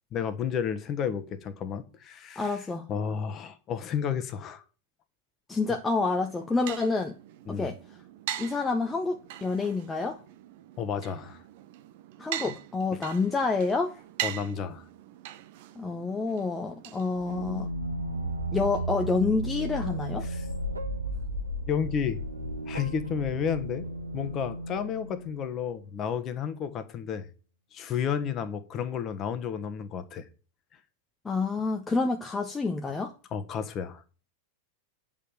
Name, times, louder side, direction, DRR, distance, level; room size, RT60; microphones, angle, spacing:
voice 1, 0.1-4.6 5.7-5.8 7.5-7.7 10.8-11.4 12.4-12.5 12.9-13.0 14.2-14.8 20.2-20.4 21.7-22.2 22.7-23.8 24.1-27.3 27.7-30.3 33.3-34.0, left 7 dB, 30° left, 1.4 m, -32 dB
voice 2, 2.4-2.8 5.5-7.2 7.5-7.8 8.4-10.2 12.2-13.9 15.8-17.7 18.5-20.3 31.2-33.1, left 3 dB, 15° left, 0.9 m, -28 dB
sound 1, 6.1-17.7, right 13 dB, 50° right, 0.9 m, -41 dB
sound 2, 17.1-25.7, right 1 dB, 80° right, 1.5 m, -34 dB
8.3 x 5.5 x 7.8 m
figure-of-eight pair, 90°, 0 cm